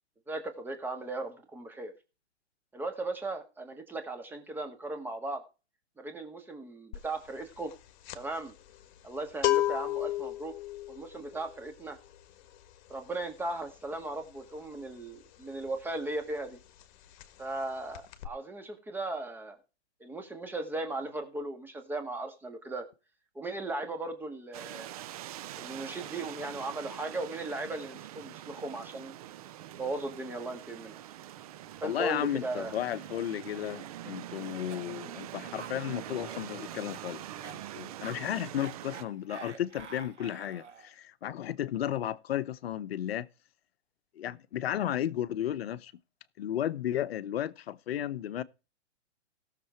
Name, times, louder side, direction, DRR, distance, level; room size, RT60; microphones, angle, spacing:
voice 1, 0.3-1.9 2.7-5.4 6.0-7.7 8.1-8.5 9.0-10.5 10.9-12.0 12.9-16.6 17.4-19.6 20.0-22.9 23.4-24.9 25.6-29.1 29.8-31.0 31.8-32.7, right 2 dB, 5° right, 1.9 m, -37 dB
sound 1, 6.9-7.2 7.5-16.0 16.3-16.5 16.8-17.6 17.9-18.3, left 15 dB, 40° left, 1.7 m, -34 dB
sound 2, 24.5-39.0, right 12 dB, 35° right, 0.5 m, -44 dB
voice 2, 31.8-43.3 44.2-45.9 46.4-48.4, left 11 dB, 60° left, 1.0 m, -34 dB
Cough, 34.4-40.9, right 6 dB, 85° right, 2.9 m, -49 dB
16.5 x 6.9 x 4.6 m
hypercardioid pair, 145°, 35 cm